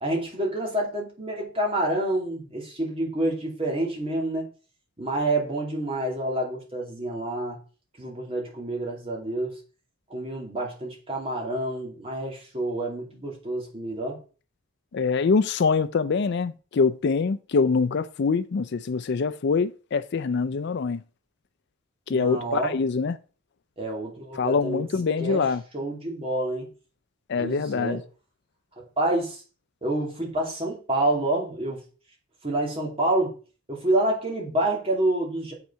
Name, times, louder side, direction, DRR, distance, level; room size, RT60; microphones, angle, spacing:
voice 1, 0.0-4.5 5.0-7.6 8.0-9.6 10.1-14.2 22.1-22.7 23.8-24.9 25.2-25.5 25.7-26.7 27.4-28.0 28.8-29.4 29.8-31.8 32.4-33.3 33.7-35.5, right 1 dB, 25° right, 2.7 m, -28 dB
voice 2, 14.9-21.0 22.1-23.1 24.4-25.6 27.3-28.0, left 5 dB, 50° left, 0.4 m, -24 dB
7.4 x 5.9 x 5.6 m
head